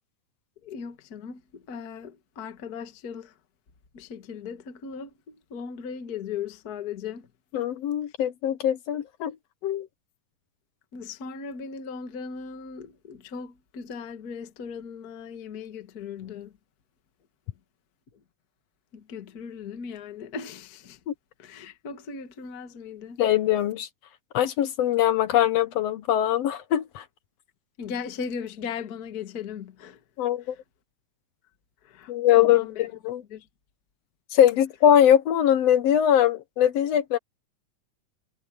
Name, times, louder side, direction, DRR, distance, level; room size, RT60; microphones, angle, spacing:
voice 1, 0.6-3.3 3.9-7.3 10.9-16.5 18.9-21.0 21.4-23.2 27.8-30.0 30.4-30.5 31.8-32.9 33.3-33.5, left 6 dB, 40° left, 1.6 m, -38 dB
voice 2, 7.5-9.3 9.6-9.9 21.1-21.2 23.2-23.9 24.3-27.0 30.2-30.5 32.1-33.2 34.3-37.2, left 10 dB, 70° left, 1.6 m, -22 dB
omnidirectional pair, 3.6 m